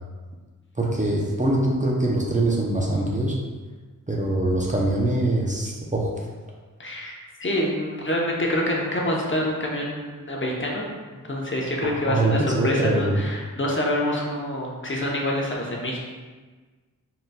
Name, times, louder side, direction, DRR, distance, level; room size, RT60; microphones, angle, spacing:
voice 1, 0.8-3.3 4.1-6.1 11.8-13.2, right 1 dB, 20° right, -3 dB, 0.7 m, -23 dB
voice 2, 6.8-16.0, left 1 dB, 35° left, -2 dB, 0.9 m, -26 dB
3.9 x 3.9 x 2.3 m, 1.4 s
cardioid pair, 55°, 35 cm